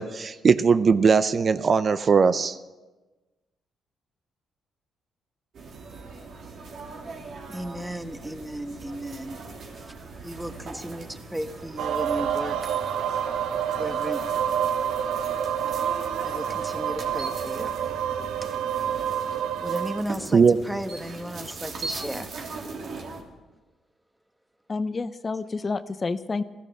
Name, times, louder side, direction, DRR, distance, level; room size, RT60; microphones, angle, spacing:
voice 1, 0.0-2.6 20.3-20.6, right 5 dB, 45° right, 13 dB, 0.5 m, -19 dB
sound 1, 5.5-23.2, right 3 dB, 60° right, 2.9 m, -40 dB
voice 2, 7.5-9.4 9.9-10.0 10.2-12.6 13.8-14.2 16.2-17.7 18.4-18.6 19.6-22.3, equal, 5° right, 8 dB, 1.2 m, -35 dB
sound 2, 11.8-20.0, right 9 dB, 85° right, 0.8 m, -28 dB
voice 3, 24.7-26.4, left 4 dB, 30° left, 12 dB, 0.6 m, -29 dB
15.0 x 14.5 x 6.5 m, 1.2 s
cardioid pair, 90°, 0 cm